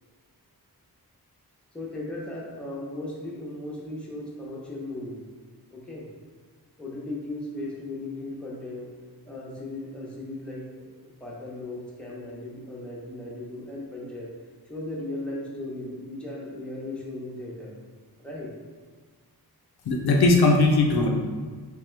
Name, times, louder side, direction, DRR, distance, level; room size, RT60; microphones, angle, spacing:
voice 1, 1.7-5.2 5.7-6.1 6.8-8.9 9.3-14.3 14.7-17.7 18.2-18.5, left 2 dB, 5° left, -5 dB, 0.7 m, -37 dB
voice 2, 19.9-21.1, left 2 dB, 75° left, 1 dB, 0.6 m, -19 dB
3.4 x 3.1 x 3.2 m, 1.5 s
wide cardioid pair, 115°, 38 cm